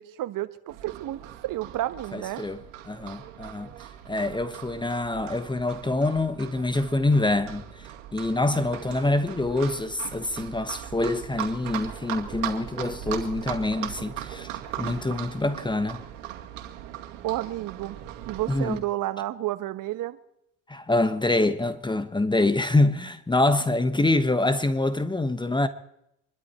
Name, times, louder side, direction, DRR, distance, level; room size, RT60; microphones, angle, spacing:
voice 1, 0.0-2.4 17.2-18.0 18.3-20.2, right 15 dB, 60° right, 1.5 m, -31 dB
Livestock farm animals working animals, 0.7-18.8, right 12 dB, 80° right, 2.2 m, -39 dB
voice 2, 2.1-3.7 4.1-14.5 14.8-16.0 18.5-18.8 20.7-25.7, left 2 dB, 10° left, 1.3 m, -25 dB
26.0 x 12.0 x 4.5 m
supercardioid pair, 80°, 37 cm